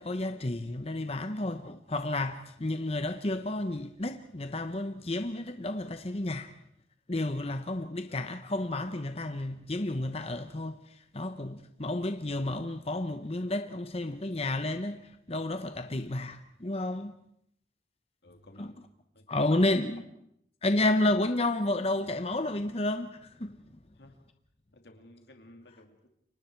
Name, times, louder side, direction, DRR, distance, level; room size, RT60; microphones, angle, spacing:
voice 1, 0.0-6.5 7.1-17.1 18.6-18.7 19.3-20.0 20.6-23.6, left 2 dB, 35° left, 0.9 m, -31 dB
voice 2, 18.2-18.8 19.1-20.0 23.9-24.1 24.7-26.1, left 1 dB, 70° left, 2.4 m, -55 dB
29.5 x 24.5 x 4.6 m
head